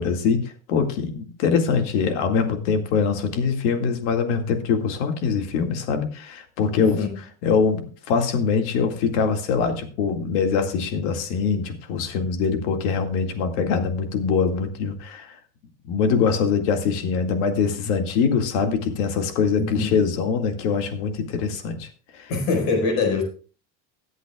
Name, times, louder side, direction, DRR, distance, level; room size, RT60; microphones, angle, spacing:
voice 1, 0.0-7.0 7.4-15.4 15.8-21.9 22.1-22.3, left 5 dB, 80° left, 2.2 m, -23 dB
voice 2, 6.8-7.1 19.6-20.0 22.3-23.2, left 3 dB, 55° left, 4.8 m, -24 dB
23.5 x 8.0 x 2.3 m
cardioid pair, 180°, 34 cm